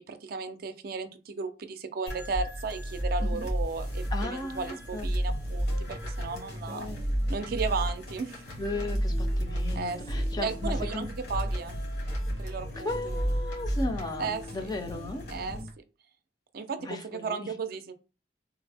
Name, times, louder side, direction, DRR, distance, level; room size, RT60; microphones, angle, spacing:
voice 1, 0.0-6.9 7.3-8.4 9.8-11.8 12.4-13.1 14.2-14.7 15.3-15.6 16.5-17.9, right 4 dB, 55° right, 9 dB, 0.4 m, -35 dB
sound 1, 2.1-15.6, equal, 80° left, 1.5 m, -32 dB
voice 2, 4.1-5.1 6.7-7.0 8.6-11.1 12.8-15.2 16.8-17.5, left 2 dB, 25° left, 6 dB, 0.4 m, -36 dB
sound 2, 5.3-15.7, left 1 dB, 60° left, 0.9 m, -44 dB
3.4 x 2.0 x 3.3 m, 0.32 s
head